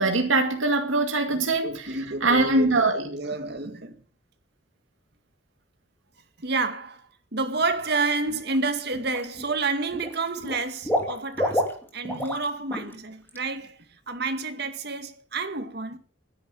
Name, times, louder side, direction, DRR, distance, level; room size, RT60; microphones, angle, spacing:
voice 1, 0.0-3.1, right 2 dB, 80° right, 2.2 m, -23 dB
voice 2, 1.3-4.0 6.4-7.0 7.3-11.7 11.9-13.8 14.1-16.0, right 3 dB, 55° right, 2.1 m, -29 dB
Water / Liquid, 8.3-8.6 8.9-9.6 9.9-12.4 12.7-12.9 13.3-13.4, equal, 10° left, 3.1 m, -29 dB
13.5 x 10.0 x 7.9 m
head